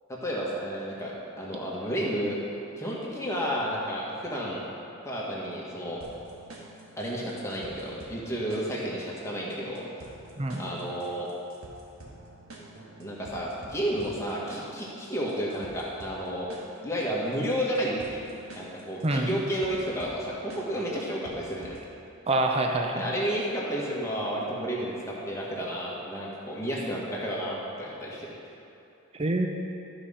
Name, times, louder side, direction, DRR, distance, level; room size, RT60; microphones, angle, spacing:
voice 1, 0.1-1.1 1.4-2.4 2.8-4.7 5.0-6.0 7.0-9.8 10.6-11.3 13.0-16.5 16.8-18.2 18.5-21.7 22.9-28.3, equal, 15° left, -5 dB, 1.6 m, -31 dB
sound 1, 6.0-22.0, right 2 dB, 85° right, 1.6 m, -49 dB
voice 2, 19.0-19.4 22.3-23.1 29.1-29.5, right 2 dB, 30° right, 2 dB, 0.6 m, -26 dB
13.0 x 5.0 x 5.6 m, 2.8 s
head